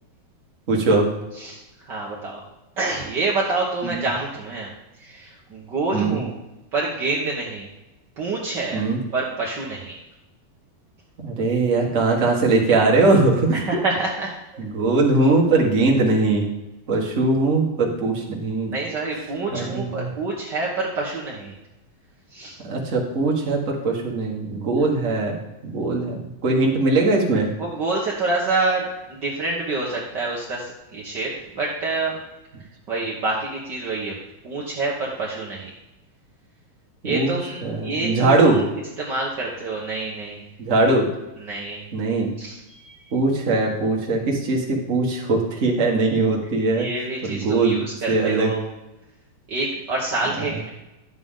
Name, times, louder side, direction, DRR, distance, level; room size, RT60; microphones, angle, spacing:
voice 1, 0.7-1.1 3.8-3.9 5.9-6.2 8.7-9.0 11.2-13.6 14.6-16.5 16.9-18.7 19.5-20.1 22.6-27.5 37.0-37.3 37.6-38.6 40.6-41.1 41.9-42.3 43.1-46.9 47.2-47.8 48.1-48.5, right 3 dB, 40° right, -1 dB, 1.1 m, -20 dB
voice 2, 1.3-2.4 2.8-4.7 5.0-6.4 6.7-7.7 8.2-8.8 9.1-10.0 13.5-14.3 18.7-21.5 22.3-22.6 27.6-32.2 32.9-34.2 34.4-35.7 37.0-38.6 39.0-40.4 41.4-41.8 42.4-43.1 46.7-48.6 49.5-50.7, right 3 dB, 70° right, -3 dB, 1.0 m, -27 dB
11.5 x 8.2 x 3.7 m, 0.96 s
omnidirectional pair, 4.0 m